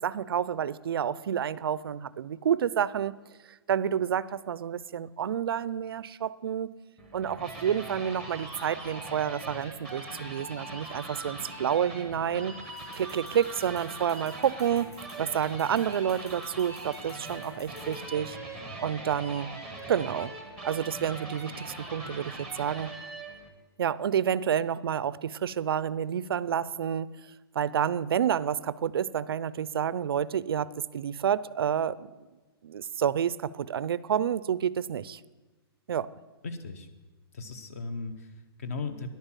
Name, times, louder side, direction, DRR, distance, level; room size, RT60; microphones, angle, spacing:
voice 1, 0.0-3.1 3.7-6.7 7.1-12.5 12.9-14.9 15.2-18.4 18.8-19.5 19.9-20.3 20.6-22.9 23.8-27.1 27.6-32.1 32.6-35.2 35.9-36.1, right 9 dB, 65° right, 18 dB, 0.5 m, -29 dB
sound 1, 7.0-23.5, right 2 dB, 5° left, 1.0 m, -41 dB
sound 2, 12.8-18.0, left 3 dB, 85° left, 3.9 m, -55 dB
voice 2, 36.4-36.9 37.3-39.1, left 4 dB, 35° left, 10 dB, 0.9 m, -37 dB
10.5 x 9.0 x 7.3 m, 1.2 s
hypercardioid pair, 180°, 13 cm